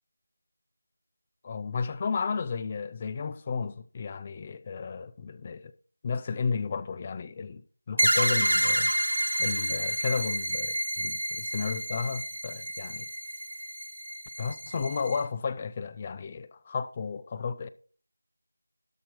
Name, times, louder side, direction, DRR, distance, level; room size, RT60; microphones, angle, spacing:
voice 1, 1.4-5.7 6.0-8.9 9.4-13.1 14.4-17.7, left 5 dB, 20° left, 0.4 m, -33 dB
sound 1, 8.0-15.2, right 1 dB, 85° right, 2.0 m, -29 dB
12.5 x 4.4 x 4.8 m
figure-of-eight pair, 170°, 0 cm